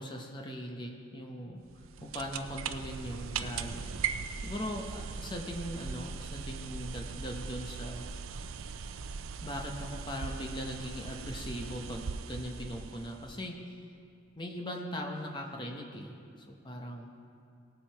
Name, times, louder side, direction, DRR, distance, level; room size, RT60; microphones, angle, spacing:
voice 1, 0.0-1.6 2.0-3.9 4.4-8.1 9.4-13.8 14.4-17.1, equal, 20° left, 2 dB, 0.9 m, -40 dB
sound 1, 1.7-13.5, right 5 dB, 80° right, 0.5 m, -39 dB
18.0 x 7.4 x 4.6 m, 2.4 s
head